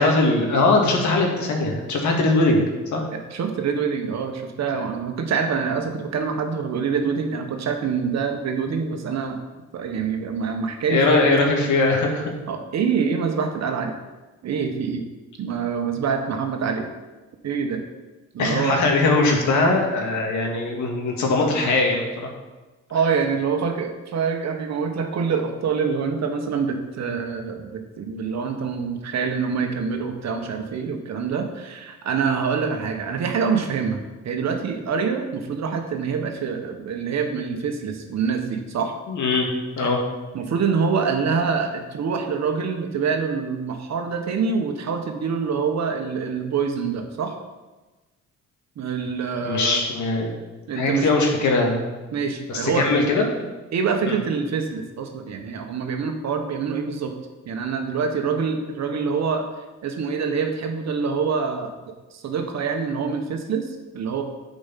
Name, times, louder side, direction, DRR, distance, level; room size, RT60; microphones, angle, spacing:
voice 1, 0.0-2.6 2.9-3.1 10.9-12.3 18.4-22.1 39.1-39.5 39.8-40.0 49.4-50.3 50.8-51.8 52.5-53.3 54.1-54.2, left 3 dB, 75° left, 1 dB, 2.0 m, -20 dB
voice 2, 3.1-9.4 9.7-11.3 12.5-13.9 14.4-15.0 15.4-16.9 17.4-17.8 18.3-18.8 22.9-38.9 39.8-39.9 40.3-47.3 48.8-49.8 50.7-51.1 52.1-52.9 53.7-57.1 57.5-59.5 59.8-64.2, right 5 dB, 60° right, 5 dB, 1.3 m, -25 dB
8.8 x 5.2 x 5.8 m, 1.2 s
cardioid pair, 90°, 30 cm